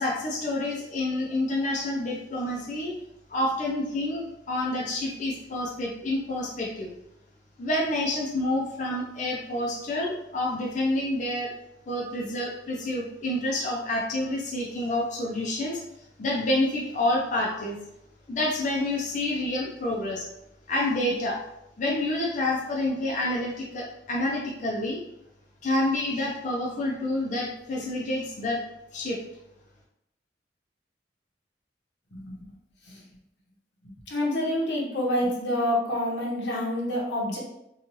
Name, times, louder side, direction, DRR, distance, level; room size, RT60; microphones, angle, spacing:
voice 1, 0.0-2.9 3.3-6.9 7.6-11.5 11.9-15.8 16.2-17.8 18.3-20.3 20.7-21.4 21.8-25.0 25.6-28.6 28.9-29.2, left 1 dB, 45° left, -3 dB, 0.4 m, -28 dB
voice 2, 34.1-37.4, left 1 dB, 85° left, -3 dB, 0.9 m, -27 dB
2.9 x 2.3 x 2.9 m, 0.83 s
head